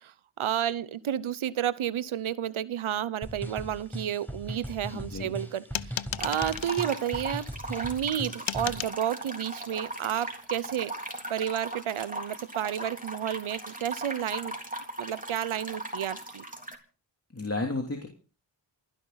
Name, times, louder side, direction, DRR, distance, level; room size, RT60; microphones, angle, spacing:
voice 1, 0.0-10.9 11.3-14.5 15.0-16.4, right 10 dB, 85° right, 0.8 m, -31 dB
sound 1, 3.2-8.9, equal, 5° left, 5.0 m, -39 dB
voice 2, 4.9-5.4 17.3-18.1, left 2 dB, 30° left, 3.0 m, -32 dB
sound 2, 5.7-6.9 8.5-9.0, left 10 dB, 70° left, 0.8 m, -34 dB
sound 3, 6.2-16.7, right 1 dB, 15° right, 3.6 m, -38 dB
27.5 x 11.0 x 4.0 m
cardioid pair, 40°, 47 cm